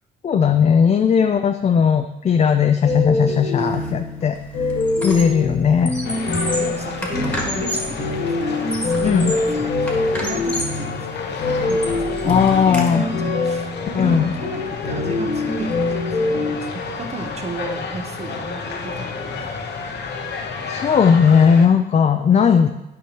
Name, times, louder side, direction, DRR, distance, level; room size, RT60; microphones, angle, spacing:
voice 1, 0.2-4.4 4.7-4.8 5.0-5.9 6.4-6.5 9.0-9.3 12.2-13.0 13.9-14.3 20.7-22.7, left 6 dB, 35° left, 7 dB, 0.4 m, -17 dB
sound 1, 2.8-16.5, left 3 dB, 75° left, 1.8 m, -24 dB
Squeak, 3.6-3.9 4.2-5.4 5.7-8.0 8.5-9.5 9.9-10.8 11.3-12.9, equal, 5° left, 1.6 m, -30 dB
sound 2, 6.0-21.7, left 4 dB, 60° left, 0.9 m, -31 dB
voice 2, 6.4-9.2 9.5-15.9 16.2-19.6, right 3 dB, 35° right, 5 dB, 0.9 m, -35 dB
9.4 x 5.1 x 3.0 m, 0.92 s
cardioid pair, 90°, 20 cm